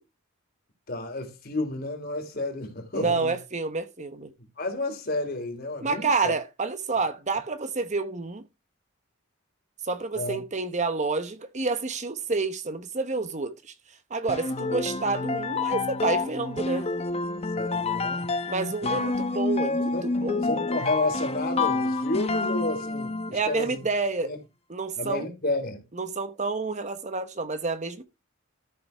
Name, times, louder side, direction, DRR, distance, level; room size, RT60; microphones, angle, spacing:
voice 1, 0.9-3.3 4.6-6.3 10.2-10.4 17.6-18.3 18.8-19.0 19.9-20.1 20.4-23.9 24.2-24.4 25.0-25.8, left 2 dB, 50° left, 3.5 m, -31 dB
voice 2, 2.9-4.3 5.8-8.4 9.8-13.7 14.1-16.9 18.5-20.4 23.3-24.3 24.7-25.3 25.9-28.0, right 3 dB, 35° right, 1.0 m, -29 dB
sound 1, 14.3-23.5, left 3 dB, 30° left, 0.9 m, -28 dB
13.5 x 6.8 x 3.4 m
head